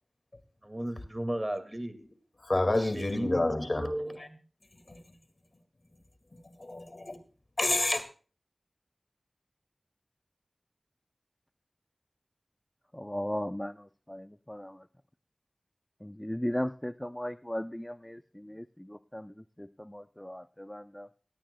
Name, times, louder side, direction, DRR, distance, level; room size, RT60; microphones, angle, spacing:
voice 1, 0.6-2.0 2.8-4.4, right 1 dB, 30° right, 9 dB, 2.1 m, -35 dB
voice 2, 2.4-3.9 4.2-4.3 4.9-5.0 6.6-7.2 7.6-8.0, left 2 dB, 60° left, 9 dB, 2.1 m, -28 dB
voice 3, 12.9-14.9 16.0-21.1, equal, 15° left, 11 dB, 0.5 m, -37 dB
17.0 x 17.0 x 2.2 m, 0.39 s
wide cardioid pair, 40°, 0 cm